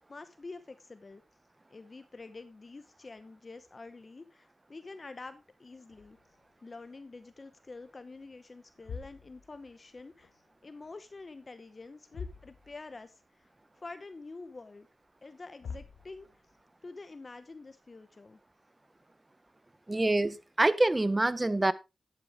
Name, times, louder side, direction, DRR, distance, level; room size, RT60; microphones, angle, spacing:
voice 1, 0.1-1.2 1.7-6.2 6.6-13.5 13.8-14.9 15.2-16.4 16.8-18.4, left 3 dB, 40° left, 0.9 m, -47 dB
sound 1, 5.9-7.5 7.9-8.2 8.6-10.5 10.8-11.5 11.7-11.8 12.1-13.1 13.4-13.5 14.1-14.2 15.2-15.3 15.6-16.6, left 5 dB, 85° left, 1.7 m, -47 dB
voice 2, 19.9-21.7, right 2 dB, 25° right, 0.8 m, -26 dB
10.5 x 8.9 x 3.5 m
cardioid pair, 70°, 0 cm